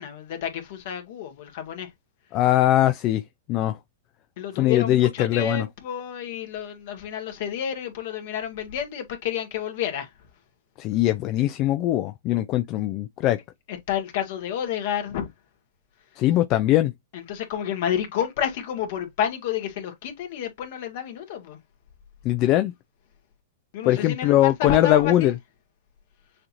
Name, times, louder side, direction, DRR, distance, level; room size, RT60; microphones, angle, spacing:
voice 1, 0.0-1.9 4.4-10.1 13.9-15.3 17.1-21.6 23.7-25.3, left 9 dB, 60° left, 1.8 m, -30 dB
voice 2, 2.3-3.2 3.5-3.8 4.6-5.7 10.8-13.4 16.2-16.9 22.2-22.7 23.8-25.4, left 14 dB, 40° left, 0.4 m, -21 dB
6.5 x 2.9 x 2.5 m
hypercardioid pair, 110°, 0 cm